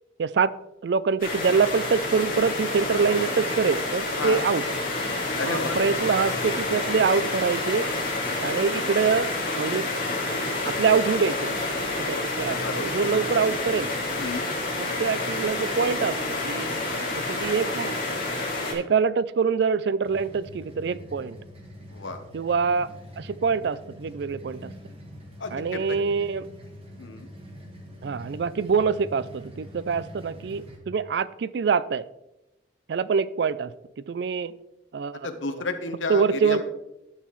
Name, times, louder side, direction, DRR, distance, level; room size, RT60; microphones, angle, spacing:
voice 1, 0.2-0.5 0.8-4.6 5.4-7.9 8.4-9.8 10.7-11.6 12.0-13.9 14.8-16.7 17.1-18.0 18.7-21.4 22.3-22.9 23.2-24.7 25.5-26.5 28.0-32.0 32.9-33.7 34.1-34.5 34.9-35.3 35.6-35.7 36.1-36.6, right 5 dB, 60° right, 17 dB, 0.3 m, -25 dB
sound 1, 1.2-18.7, left 2 dB, 45° left, 2.6 m, -29 dB
voice 2, 5.4-5.8 8.7-8.9 12.6-12.8 14.1-14.4 21.9-22.2 25.4-25.8 27.0-27.3 35.2-36.6, left 3 dB, 80° left, 8 dB, 1.0 m, -31 dB
sound 2, 20.0-30.8, equal, 30° right, 1.5 m, -44 dB
12.0 x 5.8 x 3.1 m, 0.91 s
head